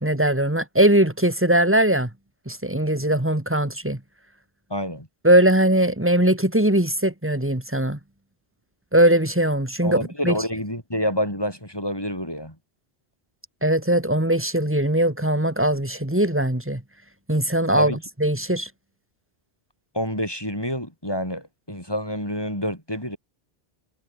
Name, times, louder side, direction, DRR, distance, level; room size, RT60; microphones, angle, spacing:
voice 1, 0.0-2.1 2.5-4.0 5.2-8.0 8.9-10.3 13.6-16.8 17.3-18.7, right 1 dB, 10° right, 2.3 m, -20 dB
voice 2, 4.7-5.1 9.8-12.6 17.7-18.0 19.9-23.2, equal, 20° left, 8.2 m, -28 dB
omnidirectional pair, 1.1 m